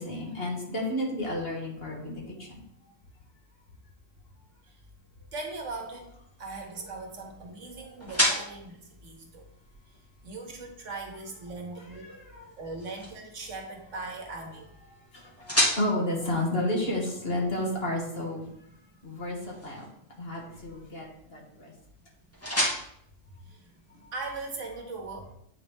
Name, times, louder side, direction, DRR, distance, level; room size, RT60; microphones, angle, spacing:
voice 1, 0.0-2.5 7.8-7.9 12.0-12.5 15.1-18.4 19.0-19.8 20.2-21.1 21.3-21.7, left 1 dB, 50° left, -2 dB, 1.7 m, -31 dB
voice 2, 5.3-6.1 6.4-9.5 10.2-12.1 12.6-14.7 20.0-20.1 21.3-21.4 23.4-25.4, right 3 dB, 65° right, 2 dB, 1.4 m, -40 dB
sound 1, 5.4-24.3, equal, 10° left, 1.6 m, -36 dB
8.8 x 4.1 x 3.4 m, 0.73 s
omnidirectional pair, 1.4 m